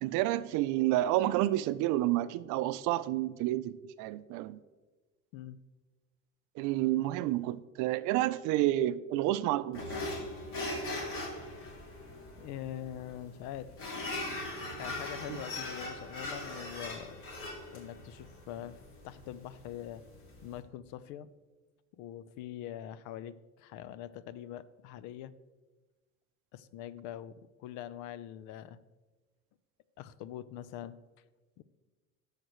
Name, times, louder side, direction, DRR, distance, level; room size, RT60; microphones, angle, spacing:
voice 1, 0.0-4.6 6.6-9.8 15.3-15.4, right 15 dB, 90° right, 15 dB, 0.5 m, -30 dB
sound 1, 9.7-20.6, left 2 dB, 50° left, 2.2 m, -40 dB
voice 2, 12.4-13.7 14.8-17.2 17.7-20.0 20.4-21.3 22.0-25.3 26.5-28.8 30.0-31.0 31.6-31.7, left 11 dB, 80° left, 16 dB, 0.6 m, -43 dB
16.5 x 6.6 x 3.1 m, 1.3 s
cardioid pair, 165°, 29 cm